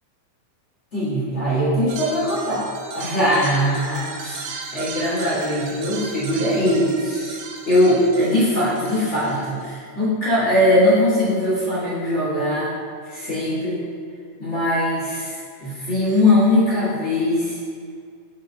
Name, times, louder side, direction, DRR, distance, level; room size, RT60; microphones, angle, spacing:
voice 1, 0.9-7.4 7.6-12.7 13.0-13.8 14.4-17.6, left 1 dB, 35° left, -10 dB, 1.2 m, -21 dB
sound 1, 1.9-9.7, right 4 dB, 85° right, 2.2 m, -36 dB
9.2 x 3.9 x 2.7 m, 2.1 s
omnidirectional pair, 3.4 m